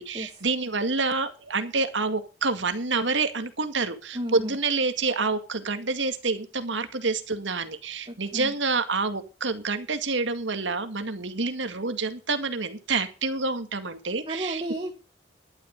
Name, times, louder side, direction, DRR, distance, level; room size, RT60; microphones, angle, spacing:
voice 1, 0.0-14.6, right 3 dB, 85° right, 9 dB, 2.1 m, -28 dB
voice 2, 4.1-4.6 8.1-8.5 14.3-14.9, right 1 dB, 30° right, 4 dB, 1.5 m, -33 dB
12.0 x 11.5 x 5.3 m, 0.33 s
head